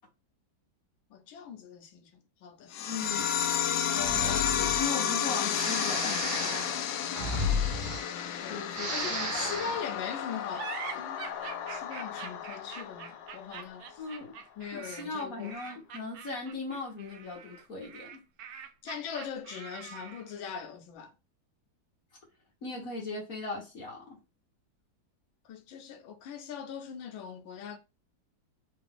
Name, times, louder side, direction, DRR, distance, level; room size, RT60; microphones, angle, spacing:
voice 1, 1.1-2.7 3.8-4.9 6.4-6.9 8.4-8.6 8.9-11.3 11.7-14.0 14.6-15.5 18.8-21.1 25.4-27.8, left 7 dB, 85° left, 1.6 m, -41 dB
sound 1, 2.7-13.7, left 9 dB, 70° left, 1.0 m, -32 dB
voice 2, 2.9-3.4 4.0-4.3 4.7-6.3 8.5-9.8 14.0-14.4 14.7-18.2 22.6-24.2, left 3 dB, 50° left, 1.6 m, -38 dB
Breathing, 3.9-4.9 5.5-8.4 8.7-9.8, left 2 dB, 40° right, 1.3 m, -33 dB
sound 2, 10.5-20.4, right 7 dB, 70° right, 0.9 m, -44 dB
3.9 x 2.6 x 3.7 m
omnidirectional pair, 2.1 m